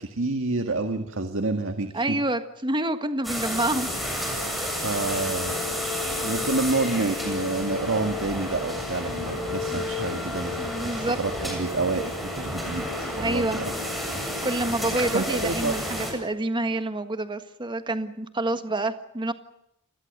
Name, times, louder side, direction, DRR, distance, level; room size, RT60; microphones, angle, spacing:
voice 1, 0.0-2.2 4.8-5.6 6.2-13.7 14.1-14.3 14.9-16.1, right 3 dB, 65° right, 6 dB, 1.9 m, -29 dB
voice 2, 1.9-4.0 4.6-5.0 9.7-10.0 10.6-11.2 13.0-13.6 14.4-19.3, right 2 dB, 20° right, 9 dB, 1.6 m, -28 dB
sound 1, 3.2-16.1, left 1 dB, ahead, 7.7 m, -30 dB
29.0 x 21.0 x 6.8 m, 0.81 s
head